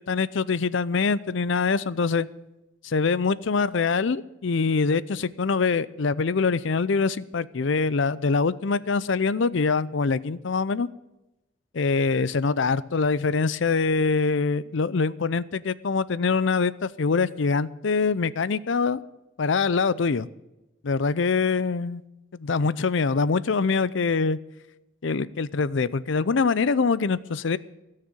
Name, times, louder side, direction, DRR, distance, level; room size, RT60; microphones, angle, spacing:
voice 1, 0.1-2.3 2.8-10.9 11.8-19.0 19.4-20.3 20.8-22.0 22.3-24.4 25.0-27.6, left 4 dB, 65° left, 18 dB, 0.5 m, -24 dB
16.5 x 6.6 x 9.0 m, 0.94 s
head